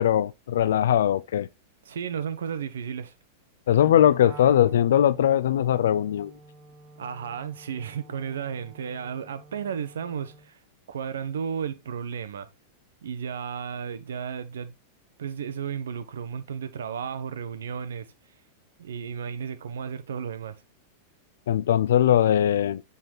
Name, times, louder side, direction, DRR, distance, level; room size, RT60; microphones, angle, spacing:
voice 1, 0.0-1.5 3.7-6.3 21.5-22.8, left 10 dB, 80° left, 0.5 m, -20 dB
voice 2, 1.8-3.1 7.0-10.6 10.9-12.5 13.0-14.7 15.2-18.1 18.8-20.6, right 7 dB, 90° right, 1.2 m, -33 dB
Wind instrument woodwind instrument, 4.2-10.5, right 3 dB, 30° right, 4.1 m, -49 dB
9.3 x 4.2 x 4.0 m
hypercardioid pair, 125°, 0 cm